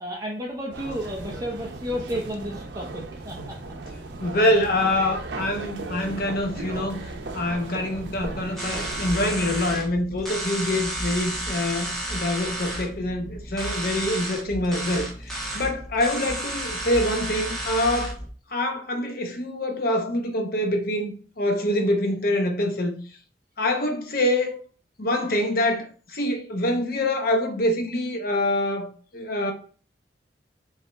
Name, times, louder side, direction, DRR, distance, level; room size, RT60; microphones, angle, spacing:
voice 1, 0.0-3.6, equal, 20° right, 0.6 m, -33 dB
sound 1, 0.7-9.8, right 3 dB, 90° right, 0.6 m, -36 dB
voice 2, 4.2-7.0 7.3-18.1 18.5-22.9 23.6-24.6 25.0-25.9 26.1-28.9 29.1-29.5, left 1 dB, 55° left, 0.9 m, -25 dB
sound 2, 8.6-18.3, right 1 dB, ahead, 1.2 m, -32 dB
4.8 x 2.9 x 3.4 m
head